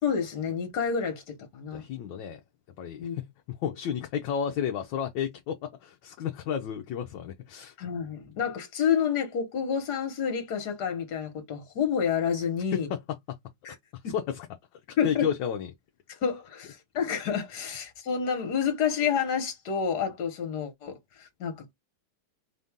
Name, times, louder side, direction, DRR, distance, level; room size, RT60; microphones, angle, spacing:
voice 1, 0.0-1.8 3.0-3.2 7.8-12.9 13.6-13.7 14.0-14.1 15.0-15.2 16.1-21.7, left 7 dB, 55° left, 1.6 m, -29 dB
voice 2, 1.7-2.4 2.8-7.7 12.7-13.0 13.3-13.4 13.9-14.5 15.0-15.7, left 8 dB, 70° left, 1.2 m, -32 dB
4.5 x 2.6 x 3.5 m
omnidirectional pair, 2.3 m